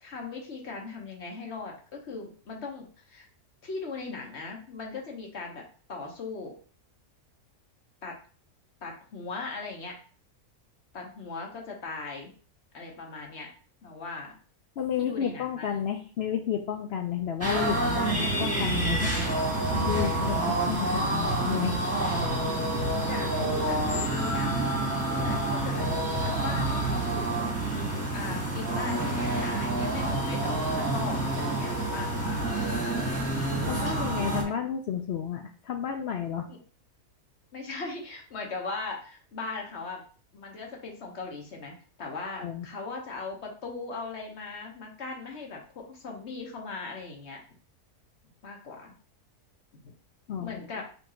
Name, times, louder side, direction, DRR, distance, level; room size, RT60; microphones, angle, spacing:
voice 1, 0.0-3.3 3.6-5.6 5.9-6.6 8.0-8.1 8.8-10.0 10.9-12.3 12.7-13.5 13.8-14.3 15.0-15.8 23.0-24.5 25.1-25.9 26.1-27.6 28.1-32.5 33.7-34.0 36.5-36.6 37.5-40.0 40.3-47.4 48.4-48.9 49.7-49.9 50.4-50.9, left 4 dB, 50° left, 0 dB, 1.3 m, -39 dB
voice 2, 14.8-19.2 19.7-21.8 33.7-36.5 42.4-42.7 50.3-50.6, left 8 dB, 75° left, 5 dB, 0.6 m, -31 dB
sound 1, 17.4-34.4, right 2 dB, 10° right, 1.3 m, -28 dB
4.3 x 2.8 x 4.3 m, 0.40 s
omnidirectional pair, 1.6 m